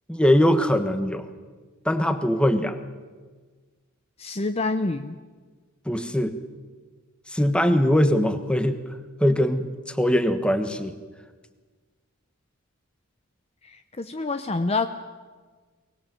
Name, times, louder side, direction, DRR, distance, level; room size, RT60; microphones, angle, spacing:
voice 1, 0.1-1.3 1.8-2.8 5.8-6.3 7.3-8.8 9.2-11.0, equal, 5° left, 8 dB, 1.3 m, -21 dB
voice 2, 4.2-5.2 13.6-14.9, left 3 dB, 30° left, 9 dB, 0.7 m, -27 dB
23.5 x 19.5 x 7.6 m, 1.4 s
head